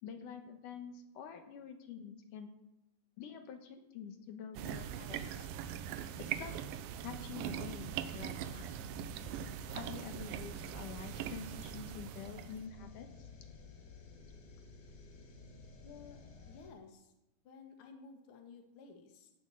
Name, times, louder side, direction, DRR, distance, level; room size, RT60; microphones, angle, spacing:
voice 1, 0.0-2.5 3.2-5.5 6.2-6.6 7.0-8.7 9.7-13.3, left 7 dB, 70° left, 6 dB, 2.8 m, -47 dB
sound 1, 4.6-12.7, right 10 dB, 90° right, 2.5 m, -42 dB
sound 2, 8.1-16.7, left 4 dB, 85° left, 4.0 m, -54 dB
voice 2, 15.8-16.2 16.5-17.1 17.4-19.3, left 5 dB, 45° left, 3 dB, 2.2 m, -54 dB
16.5 x 7.4 x 6.5 m, 0.92 s
omnidirectional pair, 3.9 m